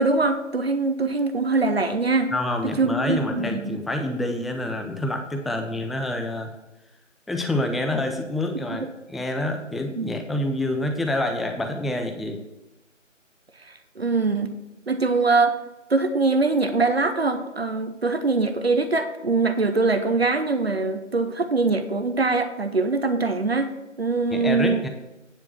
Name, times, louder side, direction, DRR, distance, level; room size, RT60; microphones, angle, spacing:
voice 1, 0.0-2.3 2.8-3.8 8.7-8.9 10.0-10.2 14.0-14.5 14.9-15.6 15.9-23.7 24.0-24.8, right 3 dB, 55° right, 9 dB, 0.8 m, -23 dB
voice 2, 2.3-6.5 7.3-12.4 24.3-24.9, left 1 dB, ahead, 5 dB, 0.4 m, -27 dB
9.3 x 5.0 x 6.0 m, 0.97 s
figure-of-eight pair, 160°, 38 cm